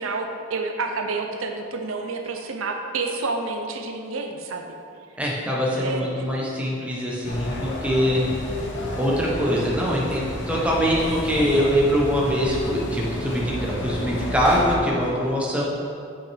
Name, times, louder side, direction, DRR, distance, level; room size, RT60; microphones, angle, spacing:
voice 1, 0.0-4.6 5.8-6.3 9.9-10.0, right 3 dB, 85° right, 4 dB, 0.7 m, -29 dB
voice 2, 5.2-8.3 9.0-15.6, equal, 5° right, -4 dB, 1.0 m, -23 dB
sound 1, 7.2-14.8, left 1 dB, 60° left, 1.1 m, -30 dB
8.8 x 5.7 x 3.5 m, 2.4 s
head